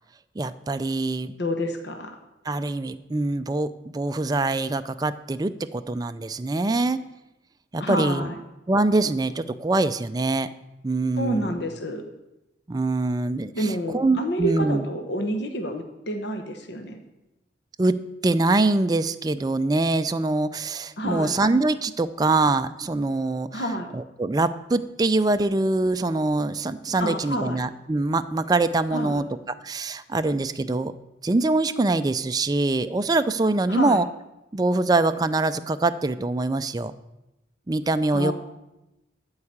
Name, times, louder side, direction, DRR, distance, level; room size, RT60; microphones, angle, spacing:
voice 1, 0.4-1.3 2.5-7.0 7.7-8.3 8.7-10.5 10.8-11.5 12.7-13.7 13.9-14.8 17.8-18.0 18.2-23.6 23.9-29.2 29.6-30.9 31.2-34.1 34.5-36.9 37.7-38.3, right 2 dB, 20° right, 10 dB, 0.4 m, -24 dB
voice 2, 1.4-2.2 7.8-8.4 11.1-12.0 13.5-17.0 21.0-21.4 23.5-23.9 27.0-27.6 28.9-29.2 33.7-34.0 38.1-38.3, equal, 60° left, 5 dB, 1.0 m, -28 dB
12.5 x 4.8 x 8.6 m, 0.95 s
head